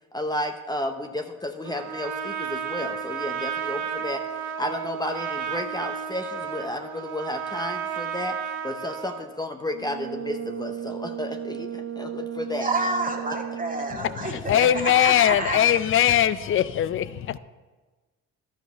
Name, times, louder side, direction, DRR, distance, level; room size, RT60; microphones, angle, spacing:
voice 1, 0.1-4.2 4.6-12.7 14.3-14.6, left 1 dB, 15° left, 0.8 m, -32 dB
Trumpet, 1.6-9.3, right 8 dB, 65° right, 1.2 m, -32 dB
Brass instrument, 9.7-14.1, right 9 dB, 40° right, 1.6 m, -35 dB
voice 2, 12.6-15.6, right 2 dB, 25° right, 2.0 m, -29 dB
voice 3, 14.0-17.4, left 11 dB, 40° left, 0.5 m, -21 dB
11.0 x 5.1 x 6.9 m
supercardioid pair, 75°, 32 cm